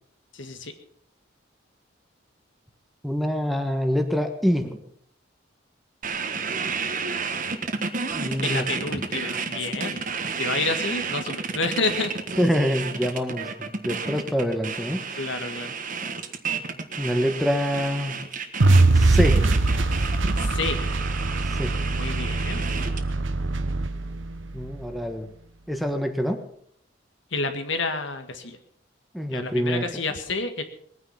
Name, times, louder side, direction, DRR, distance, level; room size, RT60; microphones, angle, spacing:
voice 1, 0.3-0.7 8.4-10.1 10.4-12.1 15.2-15.7 20.4-20.8 21.9-22.8 27.3-28.6 29.3-30.6, left 3 dB, 70° left, 8 dB, 1.8 m, -29 dB
voice 2, 3.0-4.8 8.1-8.7 12.4-15.3 17.0-18.2 18.9-19.5 21.4-21.8 24.5-25.3 25.7-26.5 29.1-29.9, equal, ahead, 6 dB, 1.4 m, -26 dB
sound 1, 6.0-23.1, right 5 dB, 45° right, 1.5 m, -31 dB
sound 2, 18.6-24.8, right 2 dB, 75° right, 1.0 m, -22 dB
21.0 x 9.7 x 5.7 m, 0.64 s
head